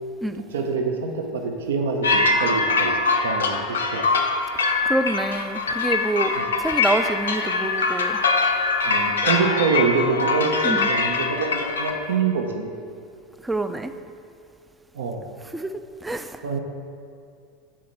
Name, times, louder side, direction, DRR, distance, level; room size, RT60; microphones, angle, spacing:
voice 1, 0.5-2.9 3.2-4.1 6.4-6.5 8.8-12.7 14.9-15.2 16.4-16.6, right 4 dB, 70° right, 4 dB, 0.5 m, -25 dB
sound 1, 2.0-11.9, left 3 dB, 75° left, 0.5 m, -23 dB
voice 2, 4.8-8.2 10.6-10.9 13.4-13.9 15.5-15.7 16.0-16.6, right 2 dB, 10° right, 10 dB, 0.3 m, -26 dB
4.6 x 4.3 x 5.9 m, 2.4 s
figure-of-eight pair, 80°, 0 cm